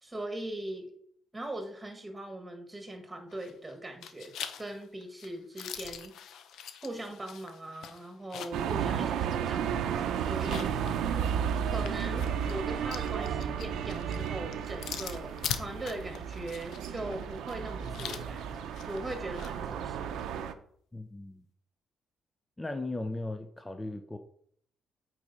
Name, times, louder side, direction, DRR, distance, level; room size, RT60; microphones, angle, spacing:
voice 1, 0.0-0.9 1.3-6.2 6.8-11.1 11.6-18.4 18.9-20.2, right 1 dB, 15° right, 4 dB, 1.7 m, -40 dB
sound 1, 3.3-3.7 4.0-8.7 9.1-9.2 10.3-19.5, left 8 dB, 75° left, 0.8 m, -43 dB
sound 2, 8.5-20.5, right 8 dB, 80° right, 0.7 m, -33 dB
voice 2, 20.9-21.4 22.6-24.2, left 2 dB, 15° left, 6 dB, 0.6 m, -37 dB
8.5 x 4.7 x 4.2 m, 0.64 s
cardioid pair, 90°, 0 cm